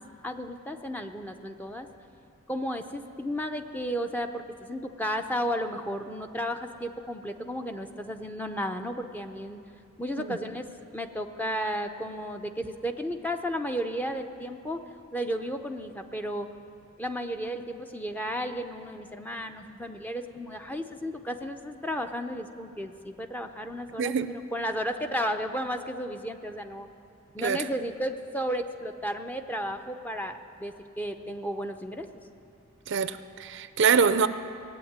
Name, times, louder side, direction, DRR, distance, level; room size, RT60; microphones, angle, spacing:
voice 1, 0.2-1.9 2.5-9.6 10.0-10.7 10.9-14.8 15.1-16.5 17.0-24.1 24.5-26.9 27.3-32.2, equal, 10° left, 6 dB, 0.6 m, -33 dB
voice 2, 24.0-24.3 27.4-27.6 32.9-34.3, right 6 dB, 60° right, 13 dB, 0.5 m, -24 dB
18.0 x 8.1 x 9.5 m, 2.5 s
head